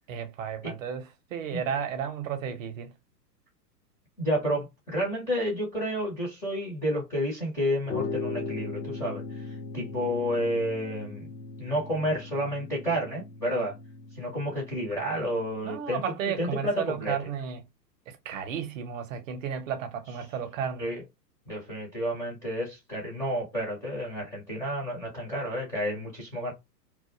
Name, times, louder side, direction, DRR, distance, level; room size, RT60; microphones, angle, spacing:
voice 1, 0.1-1.0 1.3-2.9 15.6-17.6 18.1-20.9, right 7 dB, 50° right, 0.7 m, -33 dB
voice 2, 4.2-11.3 11.6-13.7 14.1-16.0 16.4-17.2 20.8-21.0 21.5-26.5, equal, 5° left, 0.4 m, -30 dB
sound 1, 7.9-15.6, left 3 dB, 85° left, 0.7 m, -38 dB
2.3 x 2.0 x 2.9 m
hypercardioid pair, 110°, 50 cm